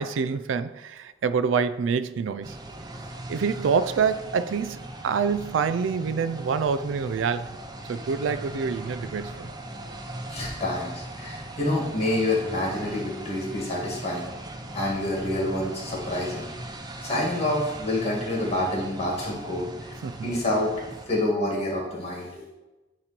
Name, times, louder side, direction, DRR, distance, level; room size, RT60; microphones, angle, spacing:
voice 1, 0.0-2.6 3.3-7.6 7.9-9.5 20.0-20.3, right 6 dB, 85° right, 14 dB, 0.4 m, -26 dB
sound 1, 2.4-21.1, right 1 dB, 20° right, 0.6 m, -39 dB
voice 2, 10.3-14.3 14.7-16.5 17.0-19.9 20.2-20.7 21.1-22.4, left 1 dB, 35° left, -3 dB, 2.1 m, -27 dB
8.8 x 3.1 x 4.4 m, 1.1 s
head